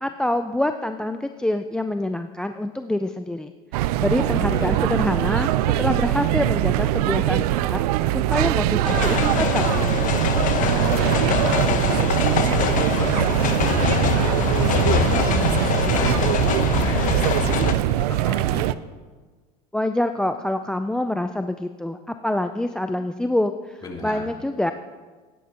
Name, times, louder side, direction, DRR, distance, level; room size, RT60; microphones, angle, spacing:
voice 1, 0.0-3.5 4.0-5.5 5.8-7.8 8.1-10.1 19.7-24.7, left 1 dB, 5° left, 7 dB, 0.4 m, -26 dB
sound 1, 3.7-18.7, right 14 dB, 75° right, 0.5 m, -22 dB
voice 2, 4.1-4.8 10.6-16.2 16.6-18.7 23.8-24.3, left 2 dB, 20° left, -2 dB, 3.0 m, -34 dB
sound 2, 8.8-17.7, left 9 dB, 40° left, 0.9 m, -24 dB
16.5 x 11.0 x 2.9 m, 1.4 s
supercardioid pair, 105°, 20 cm